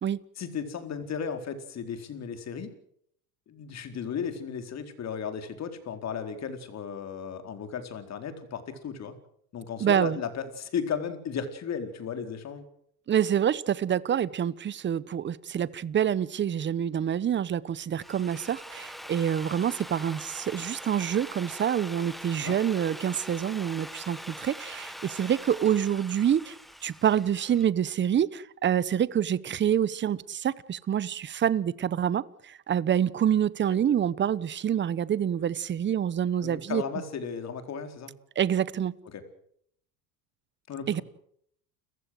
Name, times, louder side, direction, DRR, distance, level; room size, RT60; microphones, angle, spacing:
voice 1, 0.4-2.7 3.5-9.1 9.5-12.7 22.4-22.6 36.4-38.1 39.1-39.2 40.7-41.0, left 7 dB, 35° left, 4.2 m, -35 dB
voice 2, 9.8-10.2 13.1-26.5 26.8-36.8 38.4-38.9 40.9-41.0, right 9 dB, 25° right, 1.0 m, -27 dB
Drill, 17.8-27.7, equal, ahead, 1.2 m, -43 dB
29.5 x 15.5 x 7.9 m
supercardioid pair, 115°, 43 cm